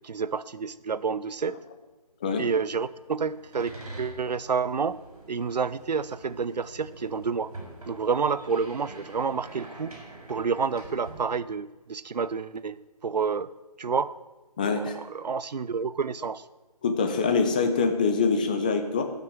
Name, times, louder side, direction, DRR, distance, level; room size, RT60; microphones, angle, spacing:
voice 1, 0.0-1.6 2.4-3.7 4.0-5.0 5.3-7.5 7.9-9.9 10.3-13.5 13.8-14.1 14.6-16.4, right 5 dB, 80° right, 17 dB, 0.6 m, -29 dB
sound 1, 3.0-11.2, right 2 dB, 60° right, 4.0 m, -45 dB
voice 2, 14.6-15.0 16.8-19.0, left 5 dB, 15° left, 6 dB, 0.5 m, -24 dB
12.5 x 6.0 x 7.1 m, 1.2 s
figure-of-eight pair, 160°, 21 cm